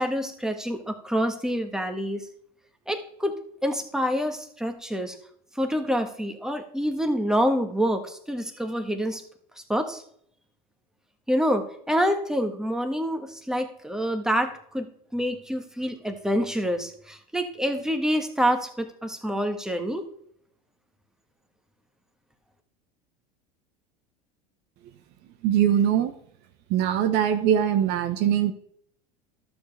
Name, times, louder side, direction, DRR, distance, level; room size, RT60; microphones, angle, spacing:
voice 1, 0.0-2.3 2.9-3.3 3.6-5.1 5.5-9.2 9.7-10.0 11.3-20.1, equal, 5° right, 6 dB, 1.5 m, -27 dB
voice 2, 25.4-26.1 26.7-28.5, right 10 dB, 60° right, 9 dB, 1.1 m, -22 dB
12.5 x 6.9 x 3.4 m, 0.64 s
hypercardioid pair, 95°, 20 cm